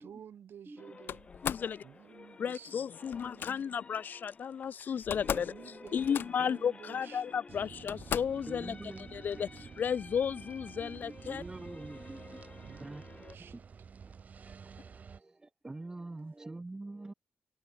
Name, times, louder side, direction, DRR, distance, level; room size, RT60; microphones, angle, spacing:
voice 1, 0.0-1.3 1.8-3.8 4.6-4.9 5.1-7.7 12.6-13.6, right 9 dB, 80° right, 1.8 m, -53 dB
sound 1, 0.8-13.4, left 4 dB, 30° left, 6.5 m, -54 dB
Slam, 1.1-1.7 3.1-3.5 4.6-4.7 5.0-5.6 5.8-6.6 7.3-7.4 7.9-8.5, left 9 dB, 85° left, 1.0 m, -37 dB
voice 2, 1.4-1.8 2.4-5.5 5.9-8.8 9.1-11.4, left 7 dB, 60° left, 0.4 m, -34 dB
sound 2, 7.5-15.2, right 6 dB, 45° right, 0.9 m, -50 dB
voice 3, 8.5-9.7 10.8-13.0 13.4-13.6 14.1-14.2 14.4-17.1, right 2 dB, 15° right, 4.1 m, -46 dB
wide cardioid pair, 150°, 4 cm